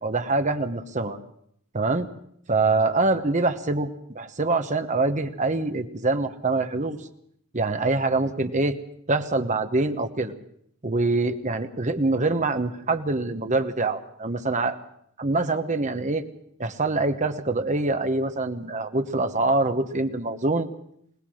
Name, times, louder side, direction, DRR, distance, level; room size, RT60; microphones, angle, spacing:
voice 1, 0.0-1.2 1.7-2.1 2.5-7.0 7.5-8.8 9.1-10.3 10.8-14.8 15.2-16.2 16.6-20.7, right 3 dB, 35° right, 8 dB, 1.1 m, -24 dB
21.5 x 19.0 x 6.4 m, 0.70 s
head